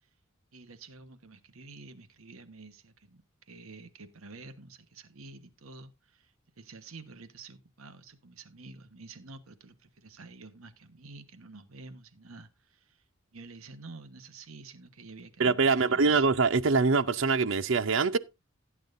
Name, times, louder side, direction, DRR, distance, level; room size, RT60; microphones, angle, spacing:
voice 1, 0.5-13.0 13.3-16.3, right 3 dB, 85° right, 1.3 m, -49 dB
voice 2, 15.4-18.2, right 4 dB, 65° right, 0.6 m, -24 dB
15.5 x 8.9 x 2.6 m
head